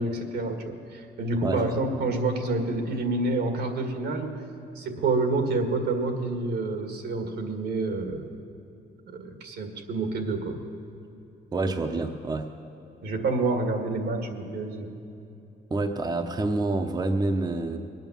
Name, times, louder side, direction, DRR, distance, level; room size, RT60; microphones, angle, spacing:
voice 1, 0.0-4.4 4.8-8.3 9.1-10.6 13.0-14.9, right 3 dB, 80° right, 5 dB, 1.9 m, -28 dB
voice 2, 11.5-12.5 15.7-17.8, right 2 dB, 25° right, 5 dB, 0.8 m, -27 dB
21.5 x 9.3 x 7.2 m, 2.7 s
cardioid pair, 110°, 17 cm